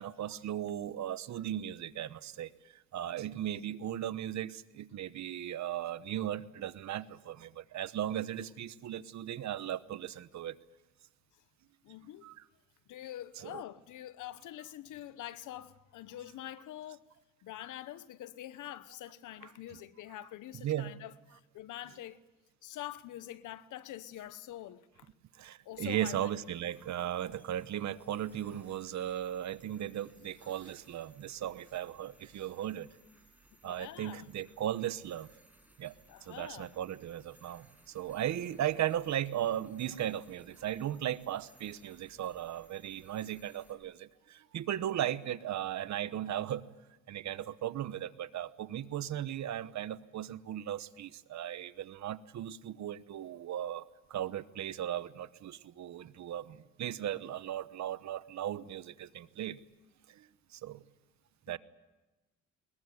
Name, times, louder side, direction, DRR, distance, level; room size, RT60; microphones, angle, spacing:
voice 1, 0.0-10.5 12.2-12.3 13.4-13.6 20.6-20.9 25.3-32.9 33.6-35.3 35.8-35.9 36.2-46.6 47.1-59.6 60.1-60.8 61.5-61.6, right 11 dB, 65° right, 1.1 m, -37 dB
voice 2, 11.8-12.3 12.9-17.1 17.4-22.2 22.6-25.1 25.6-26.2 30.4-30.7 33.6-34.3 36.1-36.7 61.5-61.6, left 13 dB, 80° left, 1.1 m, -45 dB
sound 1, 25.7-43.7, right 1 dB, 5° right, 7.3 m, -64 dB
21.0 x 21.0 x 9.6 m
cardioid pair, 90°, 30 cm